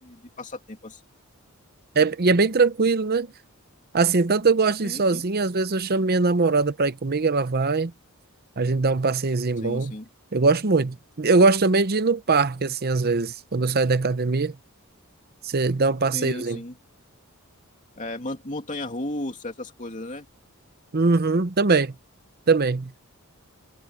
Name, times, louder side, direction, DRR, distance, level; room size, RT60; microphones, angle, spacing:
voice 1, 0.0-1.0 4.8-5.2 9.6-10.1 16.1-16.8 18.0-20.3, left 1 dB, 35° left, 2.8 m, -34 dB
voice 2, 2.0-3.3 3.9-7.9 8.6-9.9 10.3-14.6 15.4-16.6 20.9-21.9 22.5-22.9, right 3 dB, 45° right, 0.8 m, -21 dB
head